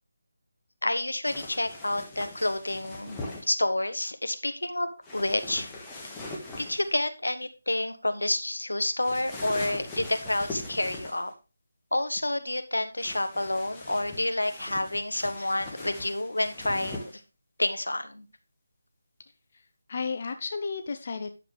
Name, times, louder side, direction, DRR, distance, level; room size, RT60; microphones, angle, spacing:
voice 1, 0.8-4.9 5.1-5.7 6.6-11.3 11.9-17.2 17.6-18.3, left 1 dB, 80° left, 9 dB, 1.2 m, -29 dB
sound 1, 1.2-3.5 5.0-6.9 9.0-11.3 13.0-17.2, left 2 dB, 10° left, 1.6 m, -41 dB
voice 2, 19.5-21.3, left 4 dB, 40° left, 8 dB, 0.7 m, -33 dB
10.0 x 7.2 x 3.2 m, 0.31 s
figure-of-eight pair, 155°, 0 cm